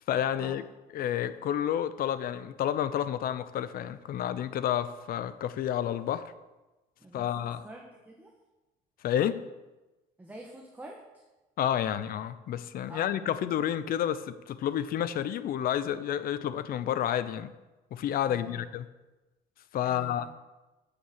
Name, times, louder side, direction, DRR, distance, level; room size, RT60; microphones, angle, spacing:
voice 1, 0.1-0.6 0.9-6.3 7.1-7.6 9.0-9.5 11.6-17.5 17.9-18.9 19.7-20.3, left 10 dB, 60° left, 14 dB, 0.6 m, -30 dB
voice 2, 7.0-7.3 7.6-8.3 10.2-11.0 12.9-13.2 18.3-18.6 19.8-20.3, right 1 dB, 10° right, -1 dB, 1.3 m, -47 dB
7.1 x 6.8 x 7.9 m, 1.1 s
cardioid pair, 110°, 17 cm